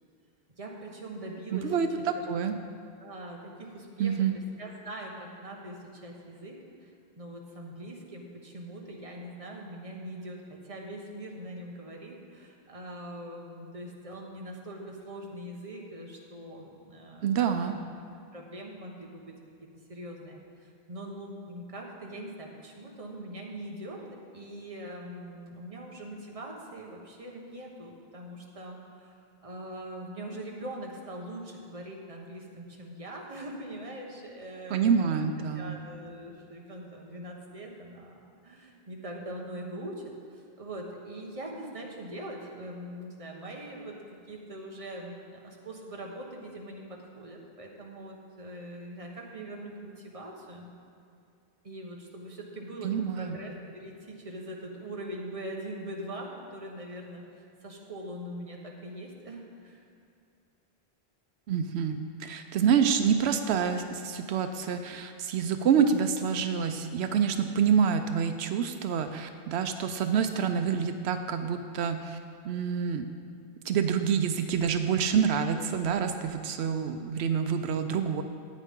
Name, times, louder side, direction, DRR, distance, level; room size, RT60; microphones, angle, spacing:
voice 1, 0.6-2.2 3.0-17.8 18.3-19.3 19.9-35.1 35.5-38.2 38.4-44.0 44.3-50.7 51.6-59.8, right 1 dB, 35° right, -1 dB, 1.3 m, -42 dB
voice 2, 1.5-1.9 2.3-2.6 4.0-4.3 17.2-17.8 34.7-35.8 52.8-53.4 61.5-72.2 72.4-73.1 73.6-78.2, right 7 dB, 90° right, 8 dB, 0.8 m, -27 dB
14.0 x 9.2 x 3.7 m, 2.5 s
omnidirectional pair, 1.1 m